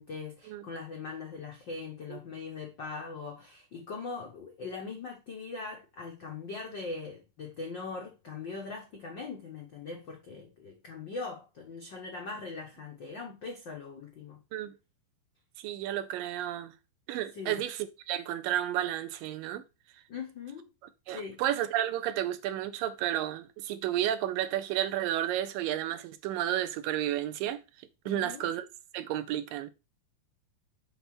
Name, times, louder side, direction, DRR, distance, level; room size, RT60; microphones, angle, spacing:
voice 1, 0.0-14.4 17.3-17.6 20.1-20.7 21.1-21.4 28.0-28.4, left 4 dB, 75° left, 1.0 m, -41 dB
voice 2, 15.6-16.7 17.1-19.6 21.1-27.6 28.1-28.7 28.9-29.7, right 12 dB, 80° right, 2.3 m, -32 dB
7.0 x 4.1 x 5.9 m
omnidirectional pair, 4.2 m